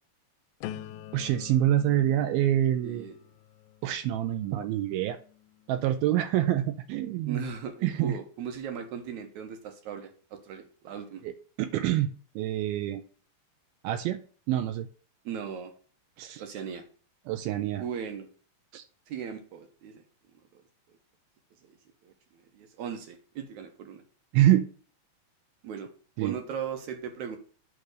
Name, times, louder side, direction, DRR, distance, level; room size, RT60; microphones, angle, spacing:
sound 1, 0.6-6.5 7.0-7.4, left 12 dB, 85° left, 2.5 m, -47 dB
voice 1, 1.1-3.1 3.8-5.2 5.7-7.4 7.8-8.2 11.2-13.0 13.8-14.2 14.5-14.9 16.2-16.4 17.3-17.8 18.7-18.8 24.3-24.7 26.2-26.4, right 12 dB, 85° right, 9 dB, 2.4 m, -26 dB
voice 2, 2.8-3.2 7.3-11.2 15.3-15.7 16.4-16.9 17.8-18.3 19.1-20.0 20.5-20.6 21.6-21.7 22.0-24.0 25.6-25.9 26.2-27.4, right 7 dB, 65° right, 6 dB, 2.0 m, -38 dB
9.0 x 3.4 x 6.4 m, 0.41 s
omnidirectional pair, 4.3 m